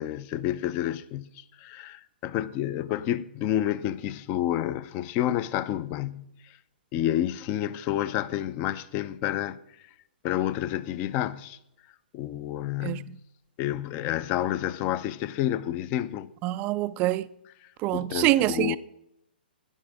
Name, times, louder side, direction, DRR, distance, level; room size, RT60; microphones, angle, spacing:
voice 1, 0.0-6.6 6.9-9.6 10.2-11.6 12.1-13.2 13.6-16.3 17.9-18.8, left 12 dB, 30° left, 0.5 m, -29 dB
voice 2, 16.4-17.3 17.8-18.8, right 16 dB, 25° right, 0.3 m, -25 dB
12.5 x 9.5 x 3.6 m
figure-of-eight pair, 125°, 6 cm